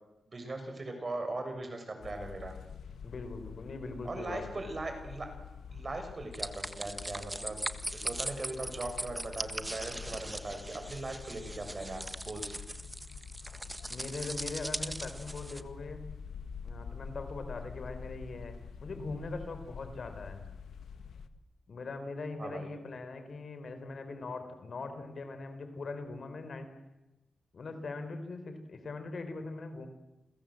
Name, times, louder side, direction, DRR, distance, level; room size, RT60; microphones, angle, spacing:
voice 1, 0.3-2.6 4.0-5.3 5.7-7.6 7.9-12.6 22.4-22.7, right 2 dB, 35° right, 6 dB, 6.9 m, -39 dB
sound 1, 2.0-21.3, left 6 dB, 85° left, 1.5 m, -47 dB
voice 2, 3.0-4.6 13.9-16.0 16.6-18.5 18.8-20.4 21.7-26.7 27.5-29.9, left 3 dB, 55° left, 8 dB, 4.4 m, -41 dB
sound 2, 6.3-15.6, right 1 dB, 10° right, 1.6 m, -40 dB
30.0 x 22.5 x 7.9 m, 1.0 s
cardioid pair, 95°, 0 cm